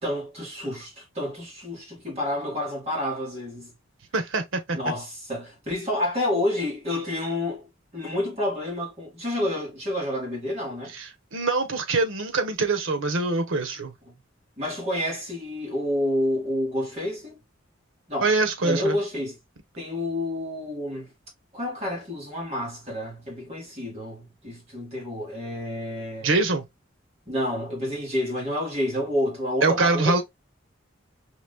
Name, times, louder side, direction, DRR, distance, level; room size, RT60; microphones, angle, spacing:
voice 1, 0.0-3.7 4.7-7.7 7.9-10.9 14.1-14.2 14.6-17.3 18.1-18.3 18.6-19.4 19.8-21.1 21.5-26.3 27.3-30.2, left 1 dB, 35° right, 2.3 m, -29 dB
voice 2, 4.1-4.8 10.9-13.9 18.2-19.0 26.2-26.6 29.6-30.2, right 3 dB, 90° right, 0.9 m, -24 dB
4.9 x 3.0 x 2.2 m
head